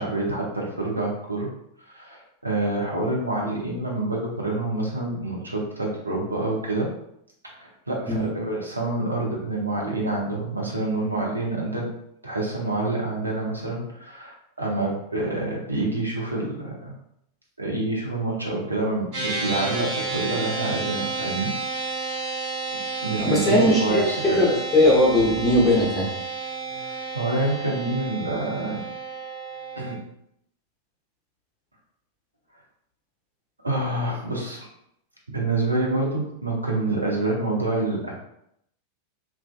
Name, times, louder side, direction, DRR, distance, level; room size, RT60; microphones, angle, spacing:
voice 1, 0.0-1.5 1.8-6.9 7.6-11.9 12.2-16.9 17.6-21.9 23.0-24.4 27.1-28.8 29.8-30.0 33.6-34.7 35.3-38.1, right 2 dB, 80° right, -2 dB, 0.6 m, -27 dB
sound 1, 19.1-30.0, right 3 dB, 45° right, 0.8 m, -31 dB
voice 2, 23.2-26.1, left 1 dB, 15° left, -6 dB, 0.7 m, -19 dB
2.5 x 2.3 x 2.3 m, 0.75 s
figure-of-eight pair, 90°, 0 cm